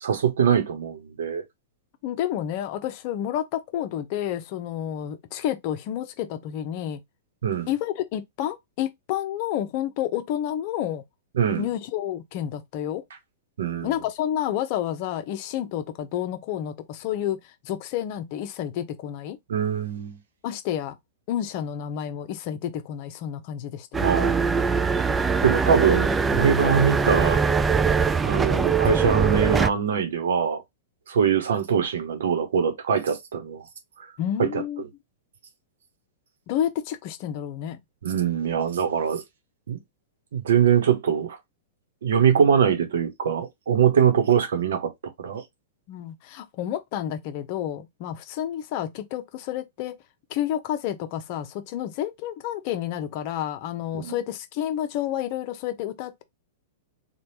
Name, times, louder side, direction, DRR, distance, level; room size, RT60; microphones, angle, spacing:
voice 1, 0.0-1.4 7.4-7.7 11.3-11.7 13.6-13.9 19.5-20.2 24.0-24.5 25.4-27.4 28.2-30.6 31.1-33.6 34.0-34.1 34.4-34.6 38.0-39.2 39.7-39.8 40.3-41.4 42.0-44.9 45.2-45.4 53.9-54.2, right 7 dB, 75° right, 0.9 m, -23 dB
voice 2, 2.0-7.0 7.7-11.0 11.6-13.0 13.8-19.4 20.4-21.0 21.3-24.1 34.2-34.8 36.5-37.8 45.9-50.0 50.3-56.2, left 11 dB, 50° left, 0.7 m, -30 dB
sound 1, 23.9-29.7, right 5 dB, 15° right, 0.3 m, -22 dB
3.3 x 2.4 x 2.8 m
hypercardioid pair, 115°, 0 cm